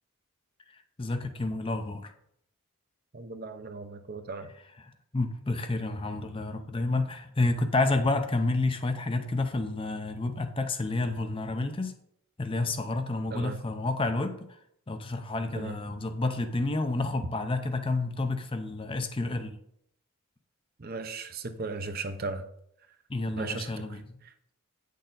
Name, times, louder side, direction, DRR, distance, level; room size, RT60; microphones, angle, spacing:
voice 1, 1.0-2.1 5.1-11.9 12.4-14.4 14.9-19.6 23.1-24.2, left 2 dB, 25° left, 0.5 m, -29 dB
voice 2, 3.1-4.5 13.3-13.6 15.6-15.8 20.8-22.5 23.4-24.3, right 3 dB, 40° right, 0.6 m, -37 dB
9.0 x 6.5 x 3.9 m
head